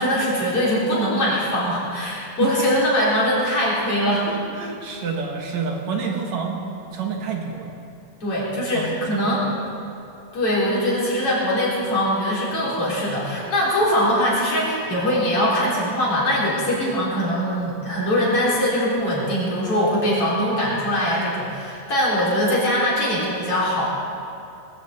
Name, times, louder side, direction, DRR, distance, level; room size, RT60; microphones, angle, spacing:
voice 1, 0.0-4.3 8.2-9.4 10.3-23.9, equal, 50° left, -6 dB, 4.6 m, -22 dB
voice 2, 2.4-2.7 4.3-6.6 6.9-7.7 8.7-9.7, right 5 dB, 70° right, 1 dB, 2.7 m, -29 dB
19.5 x 15.0 x 4.1 m, 2.7 s
omnidirectional pair, 3.4 m